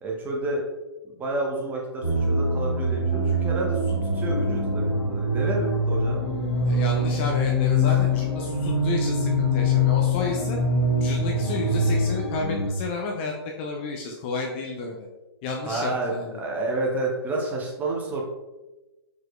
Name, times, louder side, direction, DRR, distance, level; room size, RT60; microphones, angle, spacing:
voice 1, 0.0-0.7 1.0-6.3 7.8-8.0 15.6-18.2, right 2 dB, 10° right, -1 dB, 0.7 m, -30 dB
sound 1, 2.0-12.7, left 1 dB, 80° left, 1.5 m, -24 dB
voice 2, 6.6-10.6 11.0-15.1 15.4-16.4, left 3 dB, 25° left, 1 dB, 0.4 m, -31 dB
4.8 x 4.5 x 2.3 m, 1.1 s
figure-of-eight pair, 130°, 14 cm